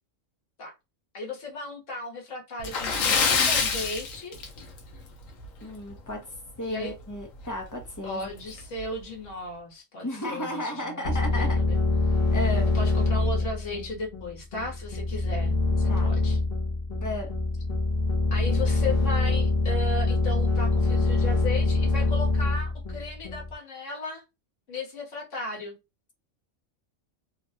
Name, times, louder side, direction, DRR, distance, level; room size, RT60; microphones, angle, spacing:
voice 1, 1.1-4.4 6.6-6.9 8.0-11.8 12.7-16.4 18.3-24.2 24.7-25.8, left 2 dB, 70° left, 1.5 m, -36 dB
Splash splatter, 2.6-5.0 5.3-5.5 5.9-6.0 7.4-7.5 7.9-8.0 8.6-8.8, left 5 dB, 85° left, 1.1 m, -25 dB
voice 2, 5.6-6.2 6.6-8.5 10.0-11.6 12.3-12.7 15.9-16.1 17.0-17.3, left 1 dB, 20° left, 0.6 m, -34 dB
sound 1, 11.0-23.5, left 2 dB, 40° left, 0.9 m, -25 dB
3.2 x 2.2 x 2.6 m
omnidirectional pair, 1.3 m